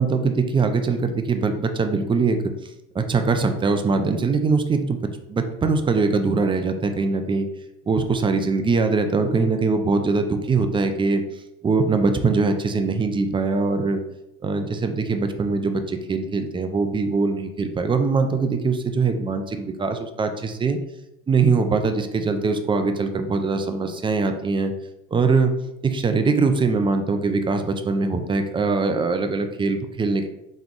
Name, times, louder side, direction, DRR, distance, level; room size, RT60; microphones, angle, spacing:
voice 1, 0.0-2.4 2.9-5.0 5.3-7.5 7.9-11.2 11.6-14.0 14.4-20.8 21.3-24.7 25.1-25.5 25.8-30.3, right 4 dB, 15° right, 7 dB, 0.5 m, -22 dB
3.5 x 3.2 x 3.6 m, 0.87 s
supercardioid pair, 95°, 30 cm